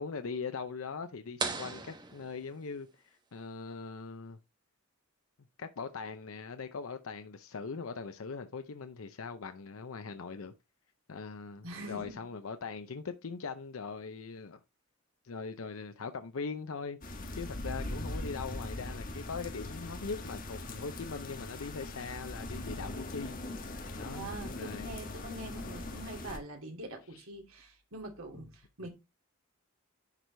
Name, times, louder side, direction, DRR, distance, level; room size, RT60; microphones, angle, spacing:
voice 1, 0.0-4.4 5.6-10.5 11.1-14.6 15.2-17.0 17.4-23.4 24.0-24.9 27.1-27.2 28.3-28.4, left 5 dB, 75° left, 0.6 m, -41 dB
sound 1, 1.4-3.1, right 4 dB, 20° right, 1.0 m, -38 dB
voice 2, 11.6-12.3 24.1-28.9, right 1 dB, 80° right, 2.6 m, -44 dB
sound 2, 17.0-26.4, left 1 dB, 40° left, 1.4 m, -40 dB
10.5 x 4.6 x 3.3 m
head